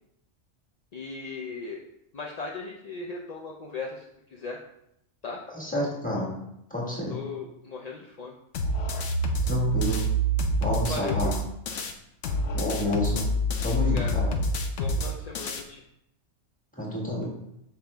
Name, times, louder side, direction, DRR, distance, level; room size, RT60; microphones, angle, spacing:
voice 1, 0.9-1.8 2.1-4.6 5.2-5.4 7.1-8.3 10.9-11.4 13.8-14.1 14.8-15.8, left 4 dB, 50° left, 0 dB, 0.5 m, -37 dB
voice 2, 5.5-6.3 6.7-7.2 9.4-10.0 10.6-11.3 12.5-13.3 13.6-14.3 16.7-17.2, left 1 dB, 5° left, -4 dB, 1.7 m, -29 dB
sound 1, 8.5-11.9 12.2-15.6, equal, 80° left, 1.1 m, -27 dB
5.9 x 4.9 x 3.4 m, 0.81 s
omnidirectional pair, 1.3 m